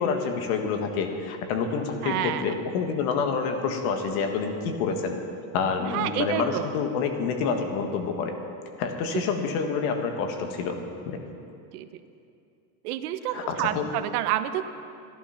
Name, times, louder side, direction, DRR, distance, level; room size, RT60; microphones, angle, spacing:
voice 1, 0.0-5.2 5.5-8.3 8.8-10.8 11.0-11.2 13.3-13.8, left 5 dB, 70° left, 5 dB, 1.8 m, -27 dB
voice 2, 2.0-2.6 5.9-6.7 11.7-11.9 12.8-14.6, right 12 dB, 90° right, 11 dB, 0.9 m, -29 dB
14.5 x 11.5 x 5.8 m, 2.6 s
supercardioid pair, 145°, 44 cm